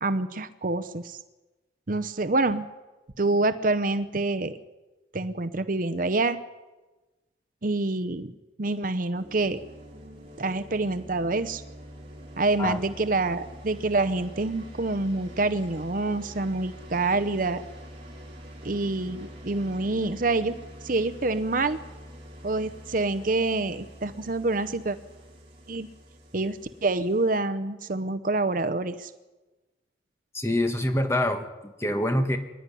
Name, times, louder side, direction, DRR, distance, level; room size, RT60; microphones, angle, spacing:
voice 1, 0.0-1.2 1.9-2.6 3.2-4.6 5.1-6.4 7.6-8.3 8.6-9.6 10.4-11.6 12.4-17.6 18.6-20.6 20.8-21.8 22.4-25.0 25.7-25.9 26.3-29.1, right 2 dB, 45° right, 12 dB, 0.8 m, -26 dB
sound 1, 9.1-27.4, equal, 30° right, 5.1 m, -45 dB
voice 2, 30.3-32.4, left 1 dB, 15° left, 6 dB, 1.6 m, -26 dB
24.5 x 11.5 x 10.0 m, 1.2 s
head